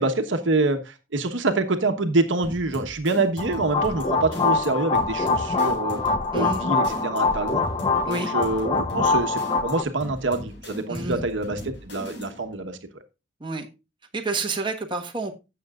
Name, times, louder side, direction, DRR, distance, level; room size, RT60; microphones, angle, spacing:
voice 1, 0.0-6.0 6.3-7.6 8.0-13.0, right 2 dB, 75° right, 6 dB, 1.2 m, -26 dB
sound 1, 2.4-12.5, equal, 70° left, 3.8 m, -39 dB
sound 2, 3.4-9.8, left 3 dB, 25° left, 0.8 m, -24 dB
voice 2, 14.1-15.3, right 3 dB, 25° right, 2 dB, 1.3 m, -29 dB
15.5 x 6.9 x 2.4 m, 0.27 s
head